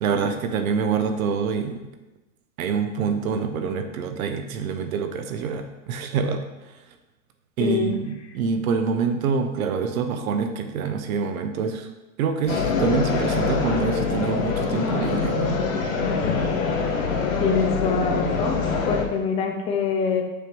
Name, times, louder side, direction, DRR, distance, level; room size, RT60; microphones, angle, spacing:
voice 1, 0.0-1.9 2.6-6.8 7.6-11.9 12.2-15.6, right 5 dB, 80° right, 7 dB, 0.9 m, -26 dB
voice 2, 7.6-7.9 17.4-20.2, left 5 dB, 15° left, 3 dB, 0.4 m, -24 dB
sound 1, 12.5-19.0, left 4 dB, 70° left, 1.3 m, -24 dB
6.6 x 3.0 x 5.2 m, 1.0 s
supercardioid pair, 145°, 41 cm